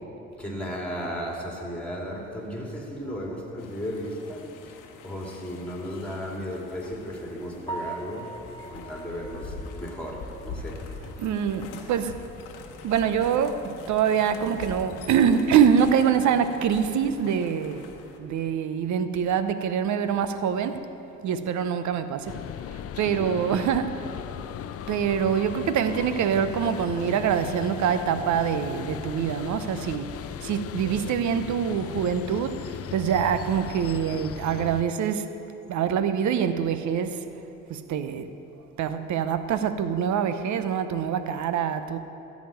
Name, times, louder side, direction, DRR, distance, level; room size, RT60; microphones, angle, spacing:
voice 1, 0.4-11.1 23.2-23.4, equal, 5° left, -1 dB, 3.1 m, -35 dB
sound 1, 3.6-18.2, left 4 dB, 85° left, 1.0 m, -43 dB
Piano, 7.7-11.6 12.0-12.1 12.6-12.7 13.1-13.2 16.2-16.3 24.8-25.1, right 3 dB, 25° left, 1.9 m, -42 dB
voice 2, 11.2-12.1 12.8-17.8 18.2-20.8 21.2-22.4 23.0-24.0 24.9-30.1 30.4-32.7 32.9-35.3 35.7-37.3 37.7-38.3 38.8-42.0, right 8 dB, 70° right, 11 dB, 0.8 m, -25 dB
sound 2, 22.3-34.8, left 9 dB, 50° left, 0.5 m, -37 dB
13.5 x 5.2 x 8.9 m, 2.9 s
supercardioid pair, 60°, 30 cm